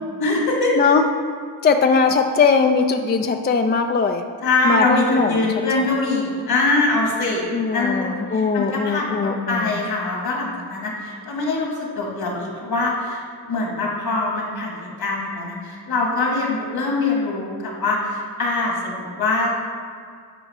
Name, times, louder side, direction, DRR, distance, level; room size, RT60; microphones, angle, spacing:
voice 1, 0.2-0.9 4.4-19.5, left 2 dB, 60° left, -2 dB, 2.0 m, -23 dB
voice 2, 1.6-4.2 4.6-5.5 5.8-5.9 7.5-9.7, left 5 dB, 25° left, 6 dB, 0.3 m, -20 dB
9.4 x 4.8 x 3.6 m, 2.2 s
cardioid pair, 95°, 41 cm